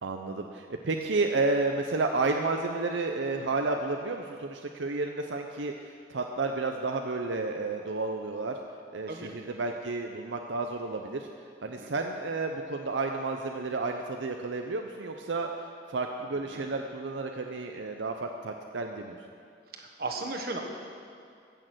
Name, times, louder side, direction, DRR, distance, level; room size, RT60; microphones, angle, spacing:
voice 1, 0.0-8.6 8.9-11.3 11.6-15.5 15.9-19.2, right 3 dB, 85° right, 3 dB, 0.7 m, -31 dB
voice 2, 19.8-20.7, right 2 dB, 55° right, 2 dB, 1.4 m, -36 dB
15.5 x 6.5 x 7.7 m, 2.3 s
head